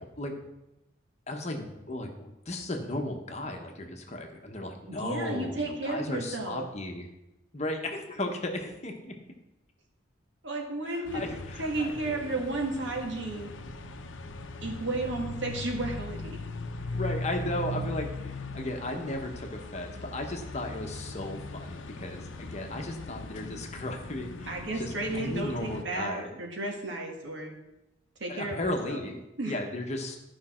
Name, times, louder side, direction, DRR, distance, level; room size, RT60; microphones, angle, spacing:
voice 1, 0.2-0.5 1.3-7.1 7.5-9.1 10.9-12.3 16.9-26.4 28.3-30.2, left 1 dB, 35° left, 3 dB, 1.1 m, -35 dB
voice 2, 4.9-6.7 10.4-11.2 11.6-13.5 14.6-16.4 24.5-27.5 28.2-29.0 29.4-29.6, right 2 dB, 70° right, 1 dB, 1.8 m, -33 dB
sound 1, 11.0-25.8, left 2 dB, 75° left, 0.7 m, -39 dB
12.0 x 5.3 x 4.4 m, 0.93 s
head